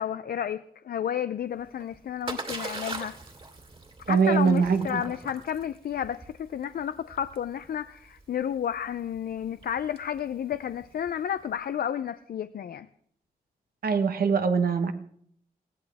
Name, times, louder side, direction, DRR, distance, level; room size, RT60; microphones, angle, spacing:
voice 1, 0.0-3.1 4.1-12.9, left 9 dB, 80° left, 0.5 m, -31 dB
Splash splatter, 1.6-11.4, right 3 dB, 40° right, 2.6 m, -42 dB
voice 2, 4.1-5.0 13.8-14.9, right 5 dB, 80° right, 1.3 m, -23 dB
21.0 x 15.5 x 3.5 m
cardioid pair, 70°, 15 cm